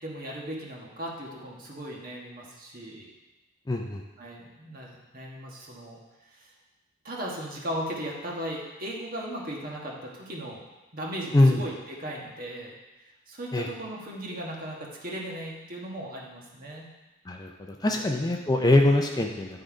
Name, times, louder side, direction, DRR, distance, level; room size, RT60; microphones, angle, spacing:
voice 1, 0.0-3.1 4.2-6.0 6.3-6.5 7.0-10.6 10.9-16.9 17.9-18.1, equal, 45° right, -2 dB, 1.4 m, -37 dB
voice 2, 3.7-4.0 11.3-11.6 13.5-13.7 17.3-19.6, left 1 dB, 20° left, 2 dB, 0.5 m, -23 dB
11.0 x 3.9 x 4.9 m, 1.1 s
head